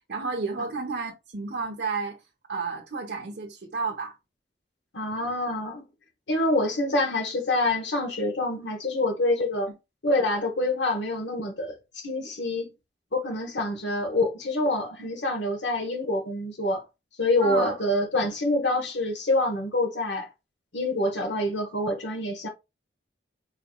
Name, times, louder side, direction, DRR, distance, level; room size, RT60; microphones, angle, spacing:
voice 1, 0.1-2.2 2.5-4.2 17.4-17.8, right 4 dB, 60° right, 0.9 m, -31 dB
voice 2, 4.9-5.8 6.3-9.7 10.0-12.7 13.1-16.8 17.2-20.3 20.7-22.5, left 2 dB, 75° left, 1.2 m, -26 dB
4.6 x 3.1 x 2.2 m
head